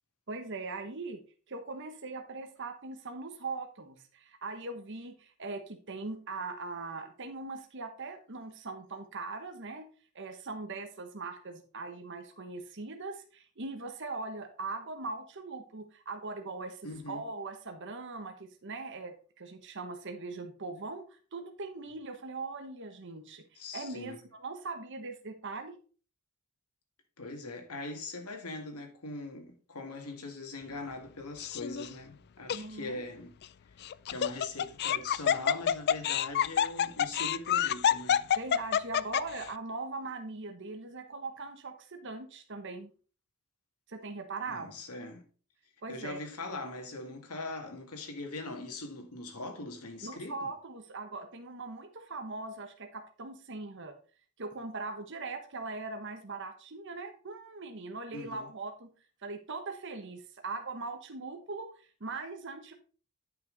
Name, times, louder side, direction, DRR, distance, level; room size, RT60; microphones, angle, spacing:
voice 1, 0.3-1.2 1.5-9.9 10.1-16.8 17.1-25.8 32.5-33.0 38.3-42.9 43.9-44.8 45.8-46.2 50.0-53.9 54.4-58.9 59.2-62.7, right 3 dB, 55° right, 1.1 m, -40 dB
voice 2, 16.8-17.2 23.5-24.2 27.2-33.4 34.1-38.3 44.5-45.2 45.9-50.3 58.1-58.5, left 2 dB, 90° left, 2.2 m, -41 dB
Laughter, 31.4-31.9 32.5-32.6 33.8-39.4, left 9 dB, 45° left, 0.3 m, -27 dB
10.0 x 5.8 x 4.0 m
head